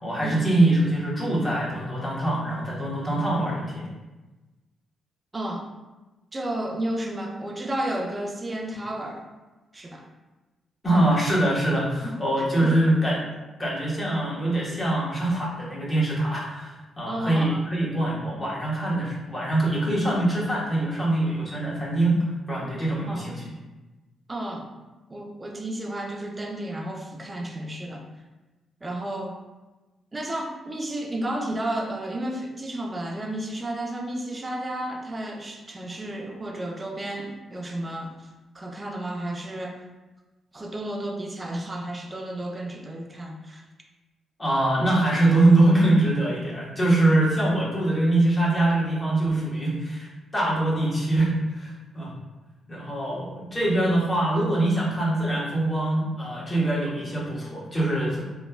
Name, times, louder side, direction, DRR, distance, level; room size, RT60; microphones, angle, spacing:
voice 1, 0.0-3.9 10.8-13.2 13.6-22.2 22.5-23.4 44.4-52.1 52.7-58.2, right 1 dB, 30° left, -6 dB, 1.3 m, -23 dB
voice 2, 5.3-5.6 6.3-9.2 9.7-10.0 12.0-12.7 17.1-17.6 23.1-23.3 24.3-24.7 25.1-28.0 28.8-29.4 30.1-38.3 38.5-39.8 40.5-43.6, right 1 dB, 30° right, 2 dB, 0.5 m, -32 dB
3.0 x 2.2 x 2.3 m, 1.1 s
hypercardioid pair, 45°, 0 cm